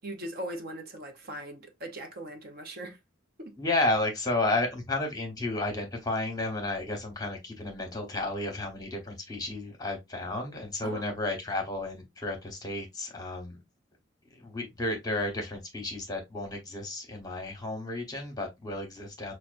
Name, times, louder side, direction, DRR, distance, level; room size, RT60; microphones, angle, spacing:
voice 1, 0.0-3.0 3.4-3.6 10.8-11.1, right 1 dB, 50° right, 0.7 m, -40 dB
voice 2, 3.6-13.6 14.4-19.3, left 2 dB, 20° left, 1.0 m, -32 dB
5.7 x 2.2 x 2.5 m
head